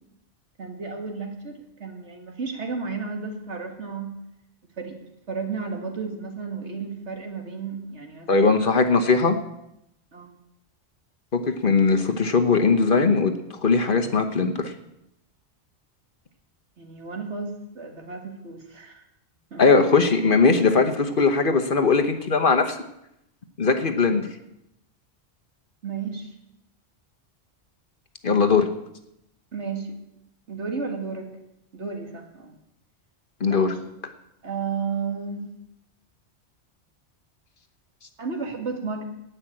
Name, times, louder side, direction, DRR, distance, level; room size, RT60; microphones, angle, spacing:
voice 1, 0.6-4.2 4.8-5.0 5.3-8.8 10.1-10.3 16.8-19.0 19.5-19.6 25.8-26.3 29.5-30.0 30.5-31.3 31.7-32.6 33.4-33.7 34.4-35.5 38.2-39.0, right 5 dB, 75° right, 4 dB, 2.3 m, -33 dB
voice 2, 8.3-9.4 11.3-13.3 13.6-14.7 19.6-22.8 23.6-24.3 28.2-28.7 33.4-33.7, left 4 dB, 50° left, 6 dB, 1.2 m, -20 dB
17.0 x 5.8 x 8.7 m, 0.83 s
omnidirectional pair, 1.2 m